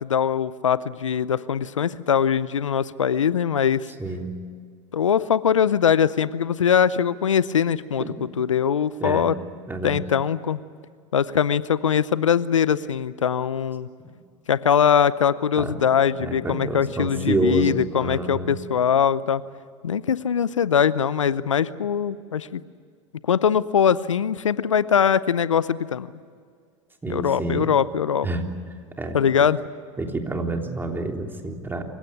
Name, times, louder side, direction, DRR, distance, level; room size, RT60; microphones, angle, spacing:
voice 1, 0.0-3.9 4.9-9.4 9.8-10.6 11.1-13.9 14.5-19.4 19.8-22.6 23.2-26.1 27.1-28.3 29.1-29.6, left 8 dB, 90° left, 18 dB, 0.7 m, -22 dB
voice 2, 4.0-4.4 8.0-8.2 9.0-9.3 9.7-10.0 14.0-14.1 15.6-15.8 16.1-18.6 27.0-27.7 28.2-28.4 29.0-29.5 30.0-31.8, right 2 dB, 15° right, 3 dB, 3.5 m, -28 dB
27.5 x 16.5 x 9.9 m, 2.1 s
hypercardioid pair, 85°, 16 cm